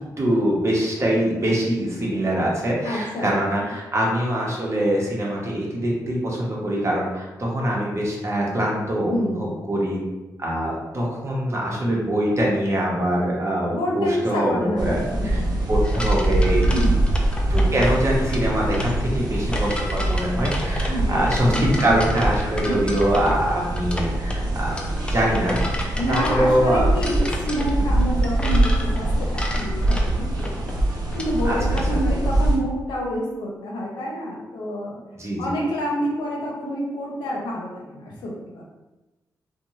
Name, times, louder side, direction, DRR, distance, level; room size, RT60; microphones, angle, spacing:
voice 1, 0.2-10.0 10.4-15.4 15.7-16.7 17.5-24.8 25.1-25.6 26.1-26.9 31.4-31.8 35.2-35.5, right 1 dB, 40° right, -3 dB, 0.9 m, -23 dB
voice 2, 2.8-3.3 3.6-3.7 9.1-9.5 13.7-15.7 16.7-16.9 18.9-19.2 20.9-21.8 22.6-22.7 25.9-30.7 31.1-35.0 35.4-38.6, equal, 90° left, -3 dB, 0.7 m, -28 dB
sound 1, 14.8-32.6, right 1 dB, 60° right, 0.6 m, -23 dB
sound 2, 15.8-31.9, left 1 dB, 15° left, 0.5 m, -33 dB
2.5 x 2.2 x 3.0 m, 1.1 s
cardioid pair, 65°, 8 cm